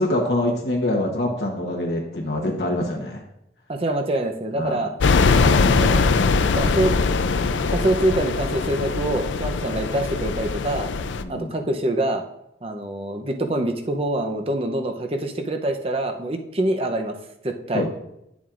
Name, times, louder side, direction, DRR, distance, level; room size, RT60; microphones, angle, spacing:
voice 1, 0.0-3.2 4.6-4.8 11.2-11.5 17.7-17.9, left 1 dB, 60° left, -1 dB, 1.0 m, -24 dB
voice 2, 3.7-4.9 5.4-6.2 6.5-7.0 7.7-10.9 11.3-12.2 12.6-17.2 17.4-17.8, right 1 dB, 30° right, 5 dB, 0.7 m, -25 dB
sound 1, 5.0-11.2, left 4 dB, 85° left, 0.5 m, -21 dB
10.5 x 7.2 x 2.5 m, 0.83 s
head